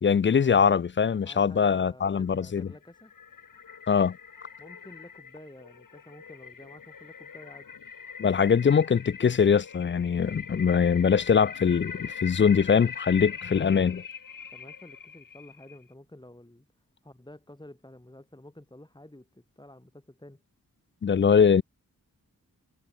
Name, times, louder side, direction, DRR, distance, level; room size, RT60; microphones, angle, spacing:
voice 1, 0.0-2.7 3.9-4.2 8.2-14.0 21.0-21.6, left 6 dB, 35° left, 0.4 m, -22 dB
voice 2, 1.2-3.1 4.6-7.7 14.5-16.7 17.0-20.4, left 1 dB, 15° left, 6.7 m, -50 dB
sound 1, 2.5-15.8, left 6 dB, 80° left, 2.6 m, -42 dB
wide cardioid pair, 95°, 32 cm